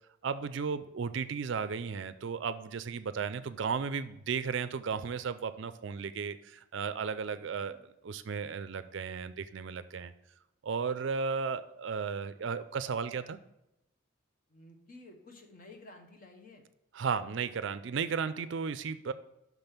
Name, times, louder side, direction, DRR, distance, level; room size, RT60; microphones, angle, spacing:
voice 1, 0.2-7.8 8.0-10.1 10.6-13.4 16.9-19.1, right 5 dB, 60° right, 13 dB, 0.4 m, -34 dB
voice 2, 7.3-7.9 14.5-16.7, left 2 dB, 40° left, 4 dB, 1.0 m, -53 dB
6.1 x 5.3 x 5.7 m, 0.86 s
head